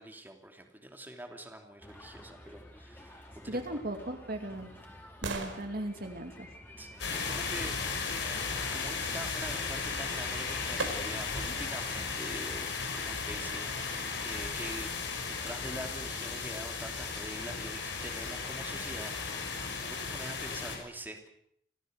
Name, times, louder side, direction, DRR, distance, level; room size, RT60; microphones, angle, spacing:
voice 1, 0.0-3.8 6.8-8.3 8.7-14.9 15.3-21.3, right 1 dB, 10° right, 3 dB, 3.0 m, -45 dB
sound 1, 1.8-12.0, left 1 dB, 10° left, 4.4 m, -51 dB
voice 2, 3.5-4.7 5.2-6.5, right 1 dB, 50° right, 5 dB, 2.6 m, -37 dB
sound 2, 3.9-7.8 9.9-10.0 10.8-11.5 12.0-12.1, right 3 dB, 85° right, 4.7 m, -43 dB
sound 3, 7.0-20.8, left 4 dB, 70° left, 6.6 m, -35 dB
27.0 x 17.5 x 8.1 m, 0.70 s
head